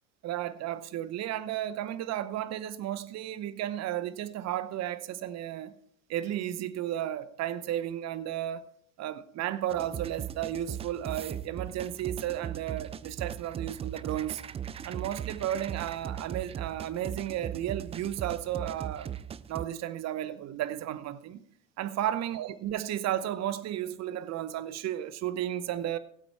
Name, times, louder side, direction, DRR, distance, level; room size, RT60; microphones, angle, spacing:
voice 1, 0.2-5.7 6.1-8.7 9.0-14.4 14.8-19.1 19.5-21.4 21.8-26.0, right 12 dB, 45° right, 0.9 m, -33 dB
sound 1, 9.7-19.7, right 9 dB, 15° right, 0.3 m, -39 dB
17.5 x 8.2 x 3.4 m
hypercardioid pair, 75°, 38 cm